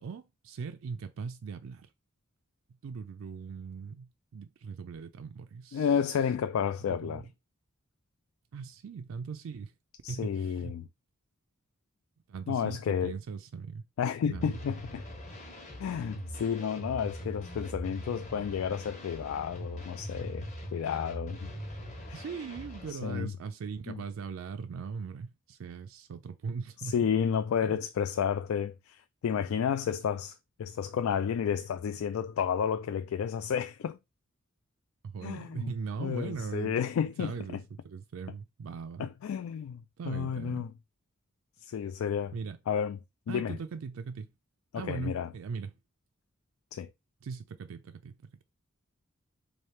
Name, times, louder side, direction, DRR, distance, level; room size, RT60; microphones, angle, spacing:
voice 1, 0.0-1.9 2.8-5.9 7.0-7.2 8.5-9.7 10.1-10.7 12.3-13.8 14.2-14.6 22.1-26.9 27.6-27.8 35.0-36.8 37.2-39.0 40.0-40.7 42.3-42.6 43.3-44.3 44.8-45.7 47.2-48.2, right 5 dB, 70° right, 0.4 m, -39 dB
voice 2, 5.7-7.2 10.0-10.9 12.5-13.2 14.0-15.0 15.8-21.5 22.1-22.2 22.9-23.3 23.9-24.0 26.8-34.0 35.2-35.7 36.0-37.6 39.0-40.7 41.6-42.3 42.7-43.0 43.3-43.6 44.7-45.3 46.7-46.9, left 7 dB, 80° left, 0.3 m, -31 dB
sound 1, 14.3-22.9, equal, 35° left, 1.0 m, -42 dB
3.3 x 2.7 x 4.3 m
head